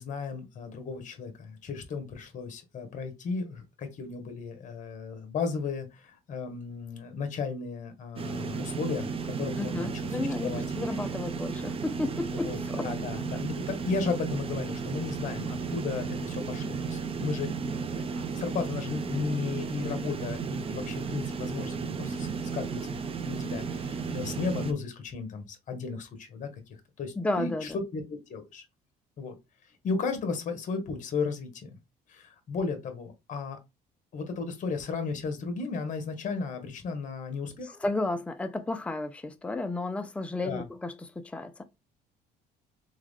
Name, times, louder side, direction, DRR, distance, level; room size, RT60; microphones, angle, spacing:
voice 1, 0.0-11.0 12.3-28.6 29.2-29.4 29.8-31.8 32.1-33.6 34.1-37.8 40.4-40.7, left 4 dB, 50° left, 1.4 m, -35 dB
sound 1, 8.2-24.7, right 5 dB, 35° right, 0.7 m, -34 dB
voice 2, 9.6-12.9 27.2-27.7 37.8-41.6, left 2 dB, 5° left, 0.5 m, -32 dB
3.6 x 3.6 x 3.6 m
cardioid pair, 110°, 17 cm